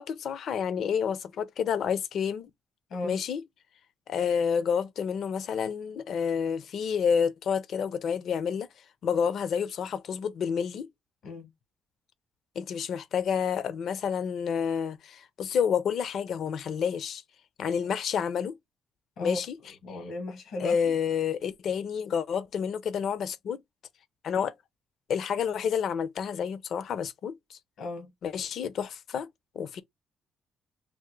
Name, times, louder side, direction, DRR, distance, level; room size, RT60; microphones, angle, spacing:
voice 1, 0.0-2.5 3.0-3.4 4.1-8.7 9.0-10.9 12.6-17.2 17.6-18.5 19.2-19.6 20.6-23.6 24.2-24.5 25.1-27.6 28.2-29.3 29.6-29.8, left 7 dB, 65° left, 0.5 m, -29 dB
voice 2, 2.9-3.2 11.2-11.5 19.2-19.4 19.8-20.9 27.8-28.1, left 2 dB, 80° left, 1.0 m, -35 dB
3.5 x 2.1 x 3.0 m
cardioid pair, 90°, 0 cm